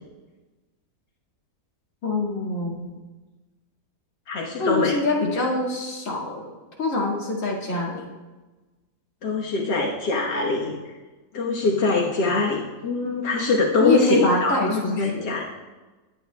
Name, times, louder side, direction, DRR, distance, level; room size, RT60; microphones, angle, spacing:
voice 1, 2.0-2.9 4.6-6.5 6.8-8.0 13.8-15.3, left 2 dB, 50° left, -3 dB, 2.2 m, -24 dB
voice 2, 4.3-5.0 9.2-10.9 11.3-15.4, left 3 dB, 80° left, -2 dB, 1.8 m, -23 dB
20.0 x 9.3 x 2.2 m, 1.2 s
omnidirectional pair, 1.8 m